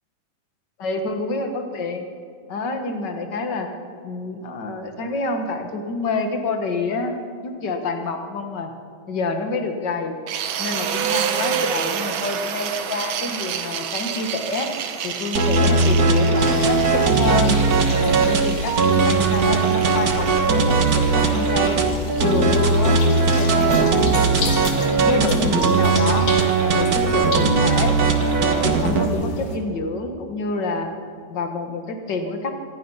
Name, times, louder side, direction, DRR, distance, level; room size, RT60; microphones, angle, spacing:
voice 1, 0.8-2.1 2.5-3.7 4.0-7.2 7.4-8.7 9.1-10.2 10.6-14.7 15.0-17.6 18.0-21.8 22.2-24.2 25.1-28.0 28.4-30.9 31.3-32.5, left 3 dB, 40° left, 5 dB, 1.9 m, -27 dB
sound 1, 10.3-22.2, right 8 dB, 75° right, 2.6 m, -29 dB
sound 2, 15.3-29.1, right 4 dB, 40° right, 1.4 m, -19 dB
sound 3, 16.4-29.6, left 5 dB, 80° left, 3.6 m, -37 dB
25.5 x 19.0 x 5.7 m, 2.4 s
omnidirectional pair, 3.5 m